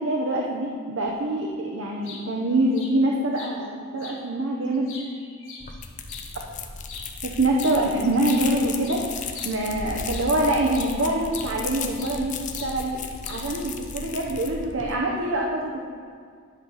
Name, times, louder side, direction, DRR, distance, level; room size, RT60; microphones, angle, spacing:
voice 1, 0.0-4.9 7.2-9.0 9.4-13.0 13.3-15.9, right 1 dB, 80° right, -1 dB, 0.8 m, -25 dB
sound 1, 1.8-2.2 2.7-2.9 3.3-3.5 4.0-4.2 4.6-6.3 6.8-7.1 7.6-7.8 8.0-10.4 10.7-10.9 11.3-12.2 12.5-12.7 13.2-13.6, left 5 dB, 75° left, 1.4 m, -42 dB
sound 2, 5.6-15.0, left 5 dB, 40° left, 0.6 m, -35 dB
10.5 x 4.0 x 6.3 m, 2.1 s
head